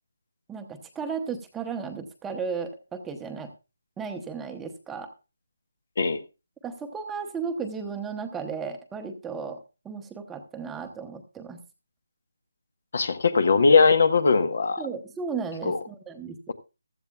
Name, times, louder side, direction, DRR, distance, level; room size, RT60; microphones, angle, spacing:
voice 1, 0.5-3.5 4.0-5.1 6.6-9.6 9.8-11.6 14.8-16.5, right 5 dB, 10° right, 0.8 m, -34 dB
voice 2, 12.9-14.8 15.6-15.8, left 4 dB, 55° left, 1.1 m, -20 dB
15.5 x 13.0 x 2.3 m
figure-of-eight pair, 160°, 0 cm